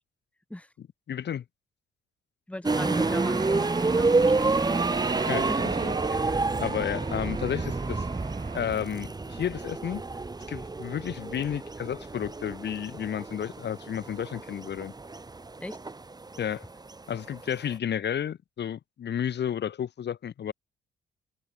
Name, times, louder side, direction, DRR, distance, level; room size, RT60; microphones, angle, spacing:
voice 1, 1.1-1.4 5.3-5.5 5.8-5.9 6.6-8.1 8.5-10.0 10.5-14.9 16.4-16.6 17.1-20.5, left 9 dB, 60° left, 4.3 m, -32 dB
voice 2, 2.5-4.8 5.5-6.0 15.6-15.8, left 1 dB, 5° left, 3.0 m, -39 dB
sound 1, 2.6-17.7, right 3 dB, 20° right, 2.1 m, -29 dB
sound 2, 2.7-8.8, right 6 dB, 40° right, 4.8 m, -36 dB
cardioid pair, 90°, 20 cm